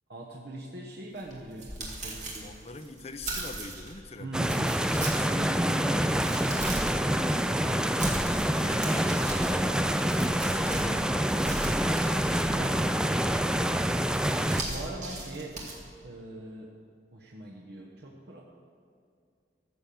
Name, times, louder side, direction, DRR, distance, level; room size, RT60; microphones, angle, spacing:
voice 1, 0.1-2.5 4.2-4.7 5.2-8.2 10.4-10.6 12.1-12.7 14.1-15.5 16.0-16.7 17.1-18.4, right 2 dB, 65° right, -3 dB, 1.2 m, -41 dB
sound 1, 1.2-3.9 4.4-5.4 5.8-7.0 7.8-11.0 11.3-12.7 14.1-15.7, right 2 dB, 45° right, 2.3 m, -38 dB
voice 2, 2.4-4.7 8.5-10.1 10.4-11.9, left 3 dB, 35° left, 8 dB, 0.6 m, -44 dB
sound 2, 4.3-14.6, equal, 5° right, 0.3 m, -26 dB
14.0 x 7.4 x 7.0 m, 2.2 s
head